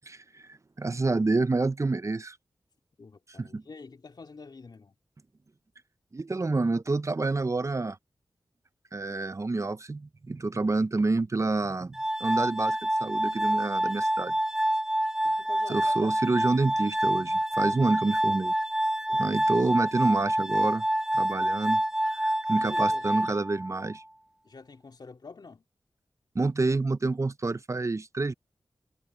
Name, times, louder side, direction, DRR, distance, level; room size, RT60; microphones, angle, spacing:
voice 1, 0.1-2.4 3.4-3.6 6.1-8.0 8.9-14.3 15.7-18.5 19.2-20.8 21.1-21.8 22.1-24.0 26.3-28.3, right 3 dB, 40° right, 0.7 m, -28 dB
voice 2, 3.0-5.0 15.2-15.9 19.1-19.4 22.6-23.1 24.4-25.6, left 4 dB, 65° left, 3.3 m, -47 dB
Glass, 11.9-24.0, right 1 dB, 5° right, 0.8 m, -27 dB
cardioid pair, 45°, 8 cm